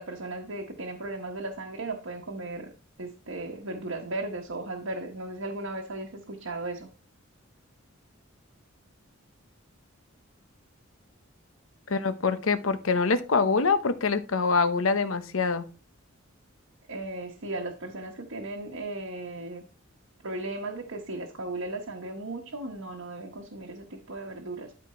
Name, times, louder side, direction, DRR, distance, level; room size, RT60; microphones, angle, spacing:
voice 1, 0.0-2.7 3.0-6.9 16.9-19.6 20.2-24.7, right 2 dB, 75° right, 1 dB, 1.2 m, -36 dB
voice 2, 11.9-15.6, left 4 dB, 75° left, 11 dB, 0.9 m, -25 dB
12.5 x 4.4 x 4.3 m, 0.38 s
head